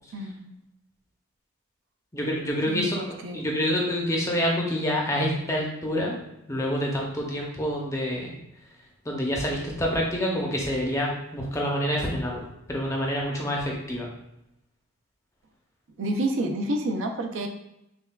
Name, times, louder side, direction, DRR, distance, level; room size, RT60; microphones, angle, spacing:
voice 1, 0.1-0.5 2.7-3.4 16.0-17.5, right 1 dB, 60° right, 4 dB, 0.4 m, -29 dB
voice 2, 2.1-6.1 6.5-8.4 9.1-14.1, equal, 15° left, -2 dB, 0.6 m, -27 dB
5.4 x 2.2 x 2.2 m, 0.85 s
head